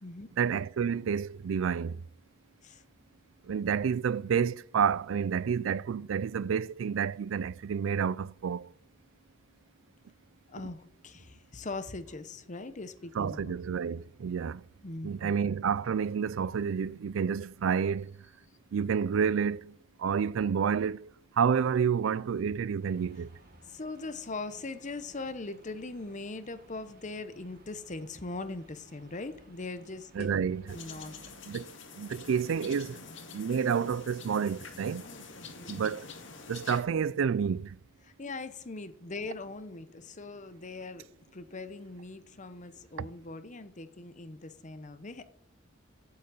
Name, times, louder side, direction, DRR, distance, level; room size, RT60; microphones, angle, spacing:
voice 1, 0.4-2.0 3.5-8.7 13.1-14.6 15.0-18.1 18.7-19.7 20.0-21.1 21.4-23.3 30.2-30.8 31.5-33.0 33.3-35.1 35.7-36.1 36.5-37.8, right 7 dB, 80° right, 0.4 m, -29 dB
voice 2, 10.5-13.6 14.8-15.3 23.7-30.3 30.7-31.2 35.0-35.3 35.5-35.8 38.0-41.1 41.3-45.3, left 3 dB, 40° left, 0.9 m, -41 dB
sound 1, 22.8-31.4, right 1 dB, 50° right, 1.6 m, -58 dB
sound 2, 30.7-36.8, left 4 dB, 65° left, 2.0 m, -46 dB
8.2 x 7.6 x 8.4 m
head